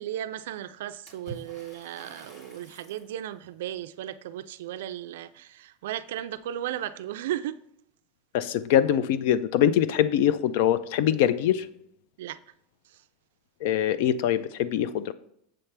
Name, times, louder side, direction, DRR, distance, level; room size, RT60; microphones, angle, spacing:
voice 1, 0.0-7.6 12.2-12.4 12.9-13.0, right 12 dB, 80° right, 0.3 m, -35 dB
Water / Splash splatter, 1.1-3.1, right 3 dB, 30° left, 1.9 m, -46 dB
voice 2, 8.3-11.7 13.6-15.1, left 10 dB, 55° left, 0.4 m, -23 dB
7.5 x 3.3 x 5.8 m
supercardioid pair, 175°, 0 cm